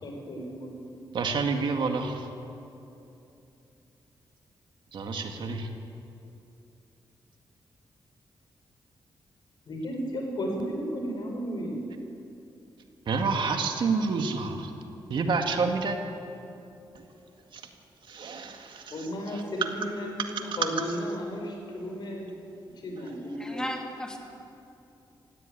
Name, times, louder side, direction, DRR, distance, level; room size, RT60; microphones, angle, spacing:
voice 1, 0.0-1.0 9.7-11.9 18.9-22.3 22.8-23.7, equal, 60° left, 2 dB, 5.0 m, -34 dB
voice 2, 1.1-2.3 4.9-5.7 13.1-14.7 15.1-16.0 17.0-17.1 17.5-17.6 18.1-18.9, right 4 dB, 70° right, 4 dB, 1.9 m, -28 dB
voice 3, 23.4-24.2, left 1 dB, 10° left, 1 dB, 2.7 m, -35 dB
17.5 x 16.0 x 9.1 m, 2.8 s
wide cardioid pair, 125°, 9 cm